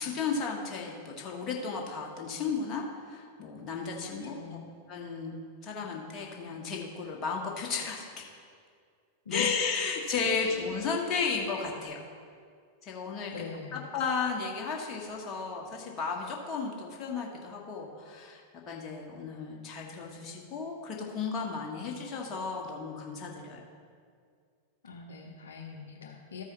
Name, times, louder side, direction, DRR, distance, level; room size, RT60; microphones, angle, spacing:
voice 1, 0.0-4.4 4.9-5.4 5.6-8.3 9.3-12.0 12.8-13.3 13.7-23.6, left 5 dB, 30° left, -1 dB, 1.4 m, -34 dB
voice 2, 4.0-4.7 9.3-9.6 10.4-10.8 13.3-13.9 24.8-26.4, left 6 dB, 70° left, 0 dB, 0.7 m, -41 dB
13.5 x 4.8 x 4.1 m, 2.2 s
figure-of-eight pair, 90°, 0 cm